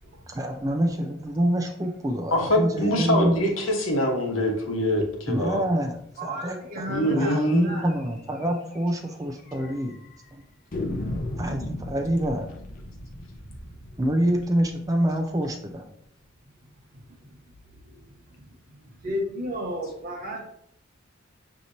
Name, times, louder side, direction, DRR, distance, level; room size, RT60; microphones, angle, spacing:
voice 1, 0.3-3.4 5.3-10.0 10.3-10.4 11.4-12.5 14.0-15.9, right 1 dB, 15° right, 3 dB, 0.4 m, -26 dB
voice 2, 2.3-5.6 6.9-7.7, left 1 dB, 85° left, 1 dB, 1.0 m, -24 dB
voice 3, 6.2-7.4 7.6-7.9 19.0-20.4, equal, 50° right, 0 dB, 1.2 m, -32 dB
sound 1, 7.9-8.0 8.4-8.5 8.7-8.8 9.5-10.0 10.7-15.5, left 1 dB, 45° left, 0.6 m, -36 dB
6.2 x 2.9 x 2.7 m, 0.69 s
head